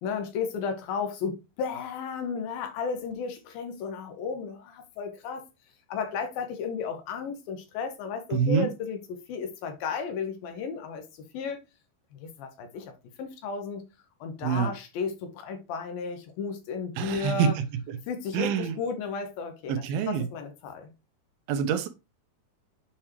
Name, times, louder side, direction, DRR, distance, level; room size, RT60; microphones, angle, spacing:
voice 1, 0.0-5.5 5.9-9.0 9.3-11.6 12.1-12.9 13.2-13.8 14.2-17.5 18.1-20.9, left 5 dB, 75° left, 2.6 m, -34 dB
voice 2, 8.3-8.7 14.4-14.7 17.0-17.5 17.9-18.0 18.3-18.8 19.7-20.3 21.5-21.9, right 7 dB, 80° right, 2.5 m, -26 dB
7.3 x 4.5 x 3.1 m
omnidirectional pair, 4.5 m